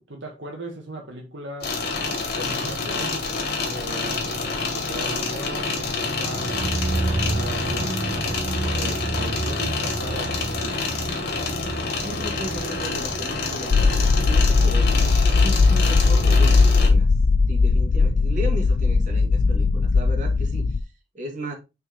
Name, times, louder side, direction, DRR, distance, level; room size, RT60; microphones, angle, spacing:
voice 1, 0.0-1.8 2.3-3.2 3.6-8.0 8.7-10.9, right 1 dB, 70° right, 1.7 m, -37 dB
sound 1, 1.6-16.9, left 3 dB, 60° left, 2.3 m, -28 dB
sound 2, 5.9-16.9 17.2-17.3, right 2 dB, 25° right, 0.6 m, -31 dB
voice 2, 12.0-17.1 17.5-21.5, equal, 45° right, 2.1 m, -35 dB
sound 3, 13.7-20.8, left 4 dB, 90° left, 0.5 m, -18 dB
6.1 x 4.6 x 4.2 m
head